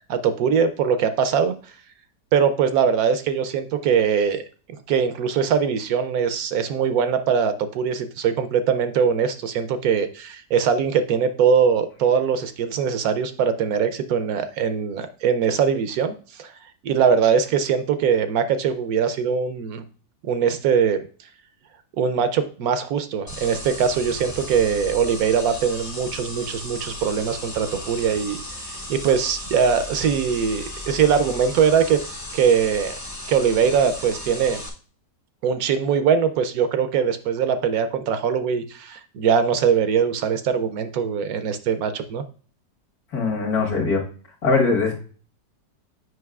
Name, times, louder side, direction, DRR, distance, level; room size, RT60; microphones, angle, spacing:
voice 1, 0.1-1.5 2.3-4.4 4.9-16.5 16.8-19.8 20.2-21.0 22.0-32.0 32.3-32.9 33.3-34.6 35.4-42.2, right 7 dB, 70° right, 10 dB, 0.9 m, -21 dB
sound 1, 23.3-34.7, left 1 dB, 20° left, 0.4 m, -35 dB
voice 2, 43.1-44.0 44.4-45.0, left 4 dB, 60° left, 1 dB, 1.7 m, -21 dB
7.8 x 5.4 x 2.3 m, 0.41 s
omnidirectional pair, 1.8 m